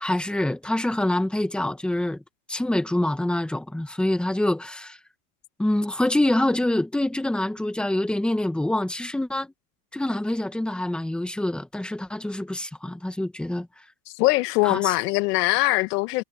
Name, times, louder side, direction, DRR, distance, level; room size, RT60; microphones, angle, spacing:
voice 1, 0.0-2.2 2.5-5.0 5.6-9.5 9.9-13.7 14.6-14.9, left 1 dB, ahead, 1.2 m, -25 dB
voice 2, 14.2-16.2, left 21 dB, 90° left, 1.3 m, -22 dB
cardioid pair, 165°, 46 cm